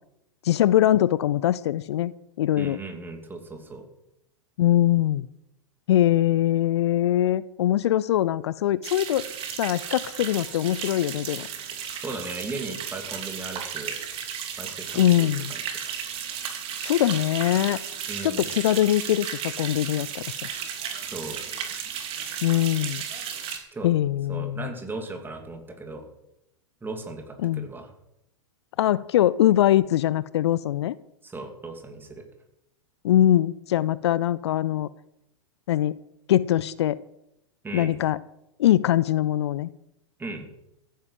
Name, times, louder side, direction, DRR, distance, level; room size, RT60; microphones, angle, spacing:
voice 1, 0.4-2.1 2.4-2.8 4.6-5.3 5.9-9.2 9.6-11.5 15.0-15.5 16.8-17.8 18.2-20.2 22.4-23.0 23.8-24.7 27.4-27.7 28.8-30.9 33.0-34.9 35.7-36.0 36.3-37.0 37.7-38.2 38.6-39.7, left 12 dB, 60° left, 19 dB, 0.5 m, -22 dB
voice 2, 2.6-3.9 12.0-14.0 14.6-15.6 18.1-18.5 21.1-21.4 23.7-23.9 24.3-26.1 26.8-27.9 31.2-32.2 37.6-38.0 40.2-40.5, right 3 dB, 10° right, 5 dB, 2.8 m, -37 dB
sound 1, 8.8-23.6, right 8 dB, 35° right, 3.0 m, -34 dB
15.0 x 9.5 x 7.6 m, 0.83 s
figure-of-eight pair, 95°, 16 cm